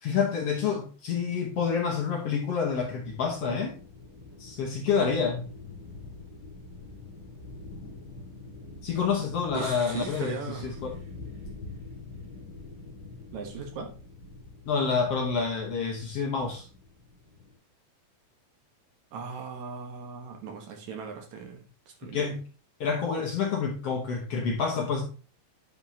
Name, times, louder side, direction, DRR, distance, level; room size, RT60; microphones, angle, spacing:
voice 1, 0.0-3.8 4.4-5.5 8.8-10.9 14.7-16.7 22.1-22.4 22.8-25.0, left 5 dB, 60° left, 1.8 m, -28 dB
sound 1, 2.7-17.5, left 3 dB, 40° left, 4.0 m, -45 dB
voice 2, 9.5-10.8 13.3-13.9 19.1-22.3, right 5 dB, 65° right, 2.4 m, -39 dB
sound 2, 9.5-11.5 11.8-11.9, right 6 dB, 85° right, 2.9 m, -49 dB
9.1 x 5.3 x 2.8 m
omnidirectional pair, 3.8 m